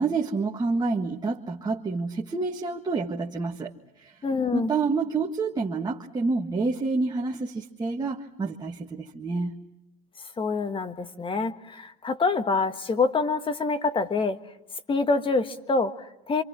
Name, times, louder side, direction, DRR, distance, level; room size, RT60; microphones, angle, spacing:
voice 1, 0.0-3.7 4.0-4.1 4.5-9.6, right 4 dB, 20° right, 0 dB, 1.7 m, -28 dB
voice 2, 4.2-4.7 10.4-14.4 14.9-16.4, left 4 dB, 25° left, 8 dB, 1.7 m, -26 dB
27.5 x 27.0 x 6.1 m, 0.84 s
hypercardioid pair, 85°, 20 cm